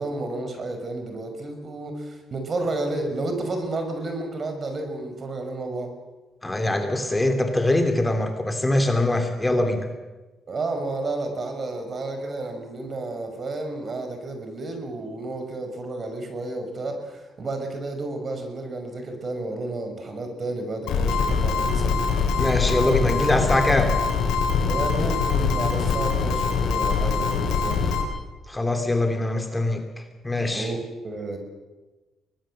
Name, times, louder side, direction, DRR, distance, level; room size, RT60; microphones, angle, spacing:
voice 1, 0.0-5.9 10.5-22.0 24.7-27.9 30.5-31.4, right 2 dB, 45° right, 6 dB, 5.9 m, -31 dB
voice 2, 6.4-9.9 22.4-23.9 28.5-29.8 30.2-30.7, left 1 dB, 15° left, 5 dB, 2.9 m, -23 dB
sound 1, 20.9-28.0, left 5 dB, 85° left, 5.1 m, -23 dB
24.0 x 19.5 x 7.7 m, 1.2 s
cardioid pair, 90°, 0 cm